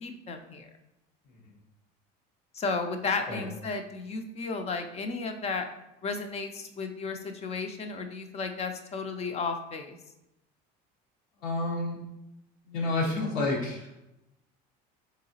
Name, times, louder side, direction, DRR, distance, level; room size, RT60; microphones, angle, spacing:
voice 1, 0.0-0.7 2.5-5.7 6.0-10.0, left 4 dB, 30° left, 6 dB, 0.5 m, -33 dB
voice 2, 11.4-12.0 12.6-13.9, left 2 dB, 85° left, -4 dB, 1.1 m, -30 dB
3.9 x 3.6 x 2.7 m, 0.89 s
cardioid pair, 115°, 21 cm